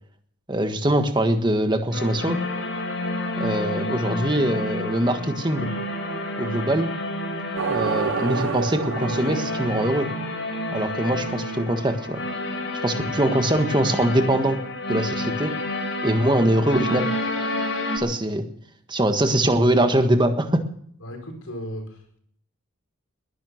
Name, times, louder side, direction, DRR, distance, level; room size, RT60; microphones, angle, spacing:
voice 1, 0.5-2.4 3.4-5.7 6.4-6.9 7.7-10.1 10.7-12.2 12.8-14.6 14.9-15.5 16.0-17.1 17.9-18.5 18.9-20.6, right 1 dB, 20° right, 7 dB, 1.5 m, -22 dB
sound 1, 1.9-18.0, left 1 dB, 60° left, 4.4 m, -29 dB
sound 2, 7.6-10.9, right 6 dB, 70° right, 0.6 m, -29 dB
voice 2, 21.0-22.2, equal, 85° left, 4 dB, 4.8 m, -36 dB
21.0 x 11.0 x 6.4 m, 0.64 s
head